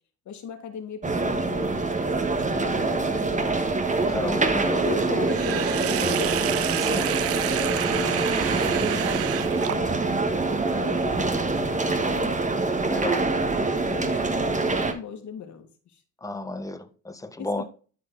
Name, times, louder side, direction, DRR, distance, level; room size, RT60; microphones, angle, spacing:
voice 1, 0.3-3.6 4.8-6.5 7.4-10.0 10.7-13.0 13.8-16.0 17.4-17.6, left 8 dB, 70° left, 2.1 m, -39 dB
sound 1, 1.0-14.9, right 3 dB, 25° right, 1.5 m, -25 dB
voice 2, 4.1-4.8 6.8-7.1 11.3-11.4 12.9-13.3 16.2-17.6, left 2 dB, 10° left, 1.2 m, -33 dB
Sink (filling or washing), 5.3-10.2, right 13 dB, 50° right, 0.4 m, -30 dB
12.0 x 4.3 x 4.0 m
cardioid pair, 90°, 30 cm